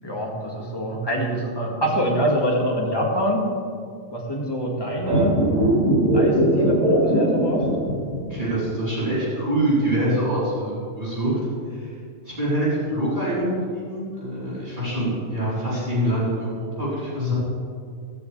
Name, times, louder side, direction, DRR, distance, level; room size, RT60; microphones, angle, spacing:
voice 1, 0.0-3.5 4.1-5.4 6.1-7.7, equal, 15° left, -3 dB, 2.2 m, -25 dB
sound 1, 5.0-8.4 8.7-8.8, right 1 dB, 80° right, 4.8 m, -20 dB
voice 2, 8.3-11.4 11.7-11.9 12.2-17.3, right 1 dB, 35° right, -10 dB, 4.4 m, -25 dB
16.5 x 13.5 x 3.4 m, 2.3 s
omnidirectional pair, 1.4 m